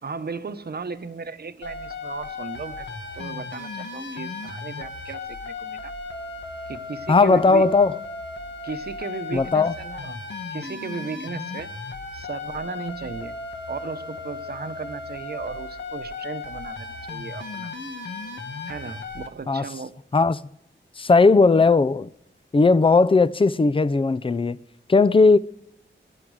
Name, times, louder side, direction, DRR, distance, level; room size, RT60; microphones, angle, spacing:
voice 1, 0.0-2.9 3.1-5.9 6.7-7.7 8.6-10.2 10.5-11.7 12.1-13.4 13.7-17.7 18.7-20.0, right 4 dB, 55° right, 1.0 m, -35 dB
sound 1, 1.6-19.3, left 3 dB, 65° left, 1.8 m, -36 dB
voice 2, 7.1-7.9 9.3-9.7 19.5-19.6 20.1-20.4 21.0-22.1 22.5-24.6 24.9-25.4, left 3 dB, 25° left, 0.6 m, -17 dB
24.0 x 11.0 x 4.9 m
wide cardioid pair, 75°, 20 cm